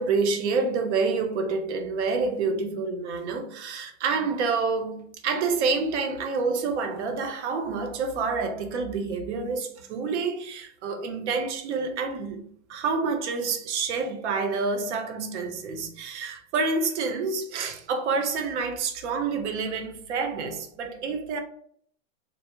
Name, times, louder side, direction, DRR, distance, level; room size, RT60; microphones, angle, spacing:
voice 1, 0.0-21.4, right 4 dB, 60° right, 0.6 m, -28 dB
2.4 x 2.0 x 2.9 m
supercardioid pair, 155°, 40 cm